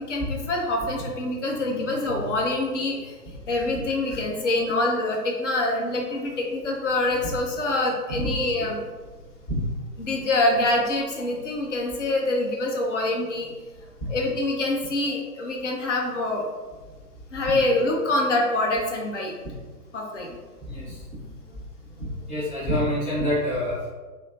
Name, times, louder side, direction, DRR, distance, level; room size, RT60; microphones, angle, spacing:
voice 1, 0.1-3.2 3.5-8.9 10.0-13.5 14.1-16.4 17.3-19.3 19.9-20.4, left 2 dB, 50° left, 0 dB, 0.7 m, -25 dB
voice 2, 20.6-21.0 21.5-21.6 22.0-23.8, equal, 25° left, -9 dB, 1.1 m, -27 dB
3.0 x 2.0 x 2.7 m, 1.3 s
figure-of-eight pair, 125°, 47 cm